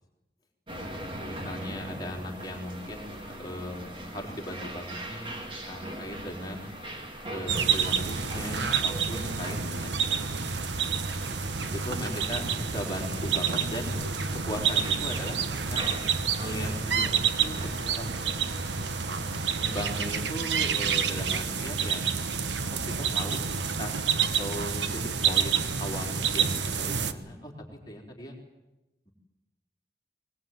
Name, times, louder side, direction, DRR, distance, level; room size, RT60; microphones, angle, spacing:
sound 1, 0.7-20.0, right 1 dB, 30° right, 2.8 m, -41 dB
voice 1, 1.2-6.7 7.3-10.2 11.6-14.2 14.5-15.4 15.7-15.8 16.4-18.3 19.6-22.0 22.7-22.8 23.1-27.5 27.9-28.3, equal, 20° left, 0 dB, 4.1 m, -38 dB
sound 2, 7.5-27.1, right 6 dB, 90° right, 1.3 m, -28 dB
21.0 x 21.0 x 9.4 m, 1.0 s
head